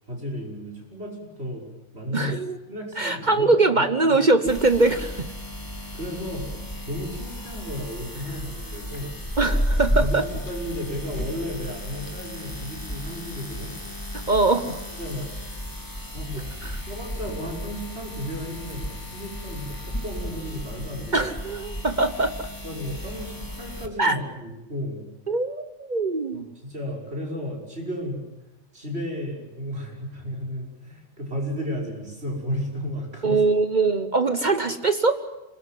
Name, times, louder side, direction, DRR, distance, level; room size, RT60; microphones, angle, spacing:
voice 1, 0.1-1.6 1.9-2.4 2.7-3.5 4.0-4.2 5.9-6.6 6.8-9.2 10.0-13.8 15.0-15.3 16.1-21.2 22.6-25.0 26.3-28.3 28.7-33.4, equal, 55° right, 0 dB, 6.1 m, -33 dB
voice 2, 2.1-2.6 3.0-5.3 9.4-10.2 14.1-14.8 16.6-16.8 21.1-22.5 24.0-24.2 25.3-26.5 33.2-35.2, right 3 dB, 40° right, 10 dB, 1.2 m, -22 dB
sound 1, 4.5-23.9, equal, 15° left, 2.4 m, -33 dB
26.0 x 20.0 x 9.4 m, 0.99 s
omnidirectional pair, 1.3 m